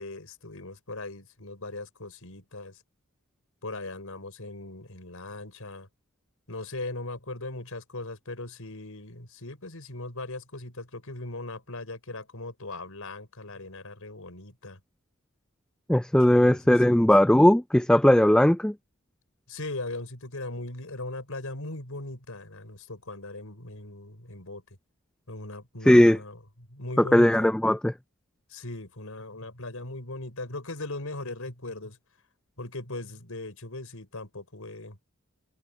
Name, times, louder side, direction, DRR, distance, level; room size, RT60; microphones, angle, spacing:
voice 1, 0.0-2.8 3.6-5.9 6.5-14.8 16.2-17.1 19.5-24.6 25.3-26.4 26.7-27.5 28.5-32.0 32.6-35.0, left 2 dB, 75° left, 5.0 m, -39 dB
voice 2, 15.9-18.7 25.9-26.2 27.0-27.9, left 1 dB, 5° left, 0.3 m, -18 dB
head